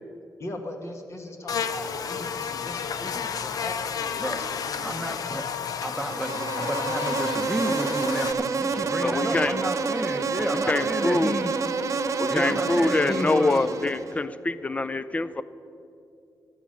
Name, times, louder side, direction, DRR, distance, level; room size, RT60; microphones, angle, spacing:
voice 1, 0.4-5.2, left 1 dB, 45° left, 4 dB, 1.6 m, -39 dB
Buzz, 1.5-8.3, left 7 dB, 70° left, 0.6 m, -31 dB
voice 2, 4.8-11.5 12.3-13.6, right 1 dB, 5° right, 5 dB, 0.9 m, -31 dB
Insect, 6.0-14.2, right 4 dB, 50° right, 0.9 m, -28 dB
voice 3, 9.0-9.5 10.2-10.3 10.7-11.3 12.2-15.4, left 2 dB, 20° left, 14 dB, 0.5 m, -25 dB
12.5 x 9.2 x 7.6 m, 2.6 s
cardioid pair, 100°, 7 cm